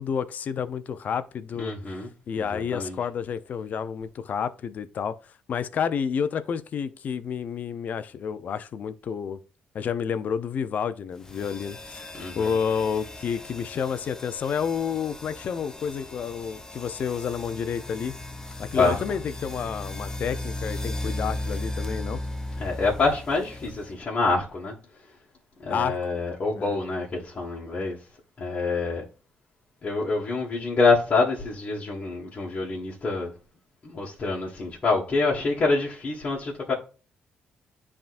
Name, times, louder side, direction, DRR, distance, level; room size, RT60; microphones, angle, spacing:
voice 1, 0.0-1.7 2.3-5.2 5.5-9.4 9.7-12.1 12.4-18.1 18.6-22.2 25.7-26.0 26.5-26.8, left 7 dB, 55° left, 0.6 m, -30 dB
voice 2, 1.6-2.1 2.4-3.0 12.2-12.5 18.7-19.0 22.6-24.7 25.6-28.0 28.4-29.0 29.8-33.3 33.8-36.7, left 3 dB, 40° left, 1.7 m, -26 dB
sound 1, 11.2-24.1, left 1 dB, 20° left, 0.8 m, -36 dB
10.0 x 3.6 x 2.6 m
cardioid pair, 95°, 3 cm